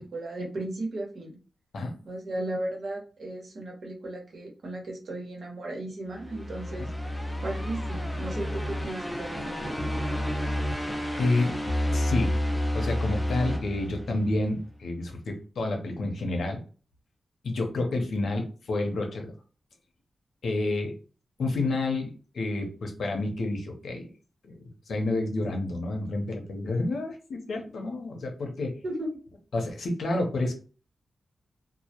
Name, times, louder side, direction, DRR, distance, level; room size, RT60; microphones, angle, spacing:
voice 1, 0.0-1.4 2.0-6.9 7.4-9.7 28.8-29.1, right 1 dB, 65° right, 0 dB, 0.9 m, -35 dB
sound 1, 6.2-14.5, left 1 dB, 15° left, 0.4 m, -30 dB
voice 2, 11.2-11.5 11.9-12.3 12.7-16.6 17.4-19.3 20.4-20.9 21.4-24.1 24.4-24.6 24.9-28.8 29.5-30.5, left 2 dB, 85° left, 3 dB, 0.6 m, -29 dB
2.1 x 2.1 x 2.8 m, 0.37 s
wide cardioid pair, 100°, 0 cm